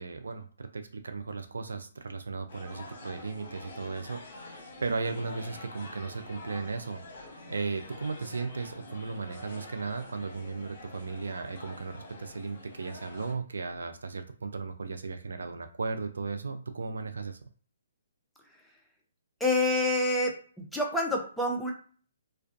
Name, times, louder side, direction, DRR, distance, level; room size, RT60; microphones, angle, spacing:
voice 1, 0.0-7.0 7.5-17.4, right 4 dB, 80° right, 7 dB, 0.3 m, -36 dB
sound 1, 2.5-13.3, left 2 dB, 55° left, 1.0 m, -46 dB
voice 2, 19.4-21.7, left 2 dB, ahead, -1 dB, 0.5 m, -27 dB
2.3 x 2.2 x 2.5 m, 0.44 s
hypercardioid pair, 140°, 0 cm